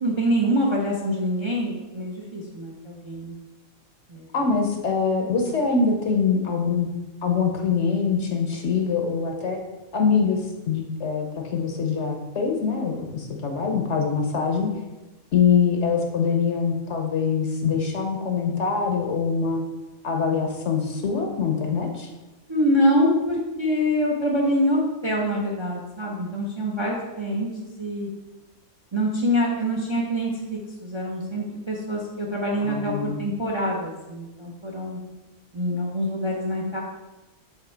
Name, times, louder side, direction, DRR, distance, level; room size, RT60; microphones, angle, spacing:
voice 1, 0.0-3.4 4.1-4.3 22.5-28.1 28.9-35.0 35.5-36.8, equal, 30° right, -1 dB, 0.6 m, -25 dB
voice 2, 4.3-6.9 7.2-9.6 9.9-14.7 15.3-19.6 20.0-22.1 32.6-33.2, left 5 dB, 60° left, 2 dB, 1.0 m, -24 dB
7.1 x 3.2 x 4.4 m, 1.1 s
omnidirectional pair, 1.5 m